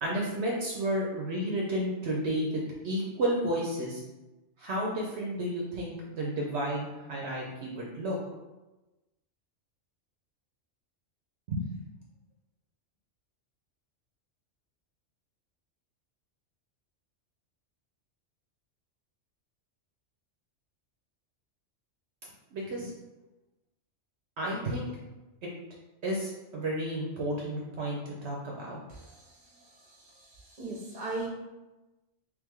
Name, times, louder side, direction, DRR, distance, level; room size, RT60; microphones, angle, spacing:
voice 1, 0.0-4.0 4.6-8.2 11.5-11.8 22.5-22.9 24.4-24.9 25.4-25.5 26.0-28.8, right 1 dB, 65° right, -3 dB, 1.0 m, -32 dB
voice 2, 30.0-31.3, right 3 dB, 40° right, -2 dB, 1.0 m, -38 dB
3.3 x 3.2 x 3.6 m, 1.1 s
omnidirectional pair, 1.2 m